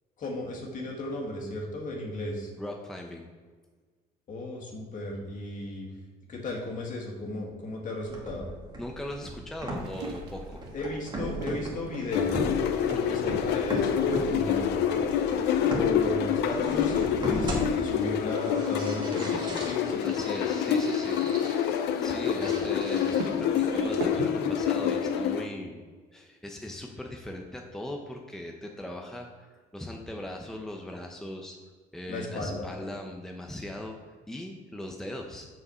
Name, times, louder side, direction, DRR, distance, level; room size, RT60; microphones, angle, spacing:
voice 1, 0.2-2.5 4.3-5.9 6.3-8.5 10.7-12.5 12.8-14.8 15.6-20.0 22.6-22.7 32.1-32.7, left 2 dB, 50° left, -1 dB, 2.1 m, -35 dB
voice 2, 2.6-3.2 8.8-10.6 12.9-13.2 20.0-21.4 22.0-25.8 26.1-31.6 31.9-34.0 34.3-35.5, left 1 dB, 5° left, 2 dB, 0.8 m, -39 dB
sound 1, 8.1-24.1, right 1 dB, 25° right, 2.0 m, -38 dB
sound 2, 9.8-24.3, right 3 dB, 80° right, 1.3 m, -45 dB
sound 3, 12.1-25.4, left 8 dB, 85° left, 0.6 m, -27 dB
6.7 x 4.9 x 5.6 m, 1.5 s
cardioid pair, 110°, 17 cm